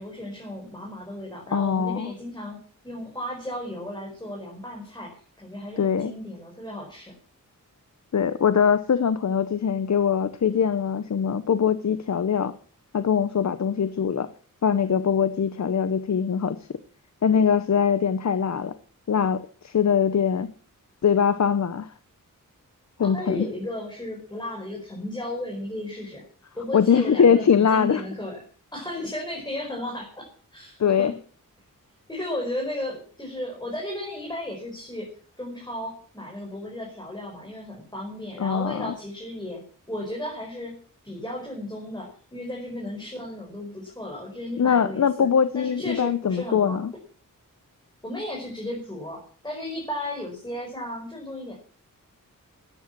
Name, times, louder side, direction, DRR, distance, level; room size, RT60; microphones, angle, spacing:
voice 1, 0.0-2.6 2.8-7.1 23.0-26.2 26.5-28.4 28.7-30.3 30.5-31.1 32.1-35.1 35.4-39.6 39.9-40.8 41.0-45.3 45.5-46.8 48.0-51.5, left 1 dB, 15° left, -2 dB, 5.3 m, -34 dB
voice 2, 1.5-2.1 5.8-6.1 8.1-12.5 12.9-14.3 14.6-16.6 17.2-18.7 19.1-20.5 21.0-21.9 23.0-23.5 26.7-28.0 30.8-31.1 38.4-38.9 44.6-46.9, left 7 dB, 55° left, 12 dB, 0.9 m, -22 dB
13.5 x 10.0 x 7.4 m, 0.43 s
wide cardioid pair, 145°, 33 cm